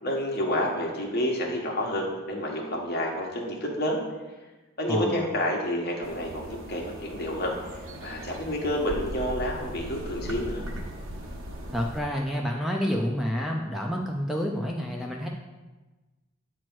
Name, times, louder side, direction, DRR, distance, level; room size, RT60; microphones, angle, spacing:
voice 1, 0.0-4.0 4.8-10.6, equal, 50° left, -1 dB, 1.3 m, -29 dB
voice 2, 4.9-5.3 11.7-15.3, equal, ahead, 0 dB, 0.5 m, -29 dB
sound 1, 6.0-12.0, equal, 80° right, 1.1 m, -38 dB
8.2 x 3.1 x 6.1 m, 1.2 s
head